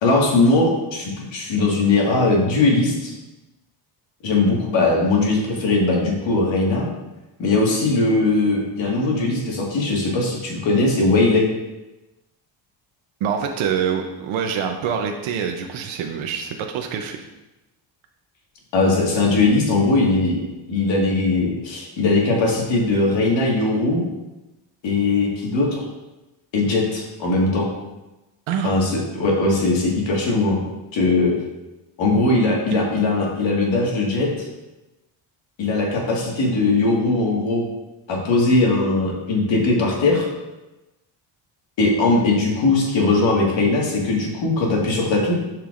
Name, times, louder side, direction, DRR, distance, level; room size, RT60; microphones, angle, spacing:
voice 1, 0.0-3.1 4.2-6.9 7.4-11.5 18.7-20.4 20.7-24.0 24.8-25.8 26.5-27.7 28.6-30.6 30.9-31.3 32.0-34.3 35.6-37.6 38.1-40.3 41.8-45.3, left 2 dB, 70° left, -2 dB, 1.8 m, -19 dB
voice 2, 13.2-17.3 28.5-28.7 32.7-32.8, right 7 dB, 90° right, 4 dB, 0.7 m, -25 dB
10.0 x 4.6 x 2.5 m, 1.0 s
cardioid pair, 115°, 46 cm